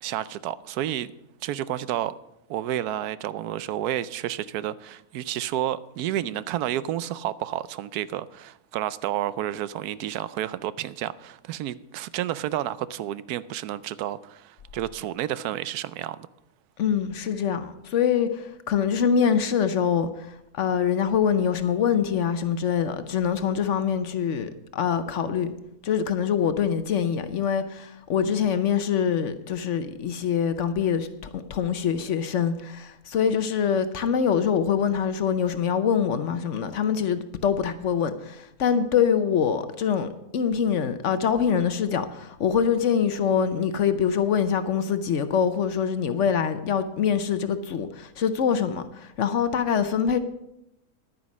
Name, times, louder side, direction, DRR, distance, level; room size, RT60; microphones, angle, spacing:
voice 1, 0.0-1.1 1.4-2.1 2.5-16.3, right 12 dB, 85° right, 1.1 m, -30 dB
voice 2, 16.8-25.5 25.8-50.2, left 7 dB, 60° left, 0.9 m, -24 dB
10.5 x 9.5 x 6.1 m
omnidirectional pair, 1.6 m